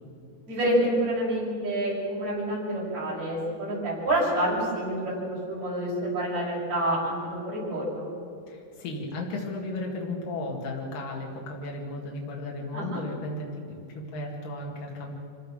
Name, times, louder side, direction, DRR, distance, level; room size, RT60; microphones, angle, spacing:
voice 1, 0.5-8.1 12.7-13.0, right 1 dB, 55° right, -6 dB, 7.6 m, -28 dB
voice 2, 8.5-15.1, left 2 dB, 80° left, -2 dB, 4.1 m, -35 dB
25.5 x 16.0 x 7.6 m, 2.7 s
omnidirectional pair, 3.8 m